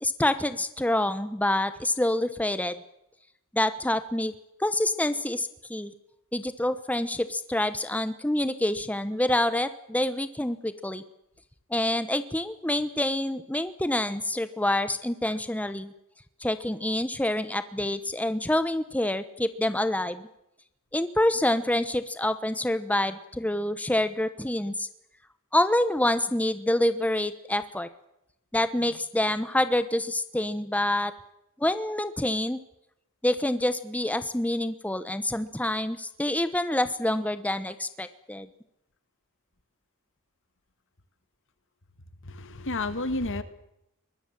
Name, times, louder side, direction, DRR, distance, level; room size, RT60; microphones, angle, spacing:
voice 1, 0.0-2.8 3.5-4.3 4.6-5.9 6.3-11.0 11.7-15.9 16.4-20.3 20.9-24.9 25.5-27.9 28.5-31.1 31.6-32.6 33.2-38.5, left 1 dB, 5° left, 12 dB, 1.0 m, -27 dB
voice 2, 42.2-43.4, left 2 dB, 60° left, 12 dB, 2.0 m, -30 dB
23.5 x 20.5 x 7.5 m, 0.83 s
head